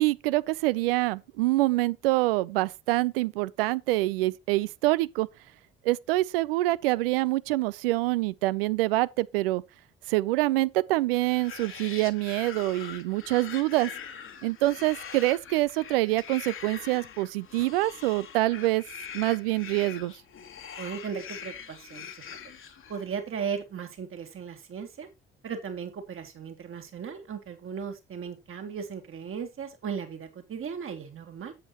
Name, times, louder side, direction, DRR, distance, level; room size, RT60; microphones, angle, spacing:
voice 1, 0.0-5.3 5.8-9.6 10.1-13.9 14.4-18.8 19.1-20.1, right 18 dB, 70° right, 0.5 m, -26 dB
sound 1, 11.2-23.2, left 7 dB, 45° left, 1.5 m, -43 dB
voice 2, 20.8-22.3 22.9-25.1 25.4-31.5, right 7 dB, 45° right, 2.3 m, -36 dB
9.9 x 8.0 x 2.9 m
figure-of-eight pair, 45°, 30 cm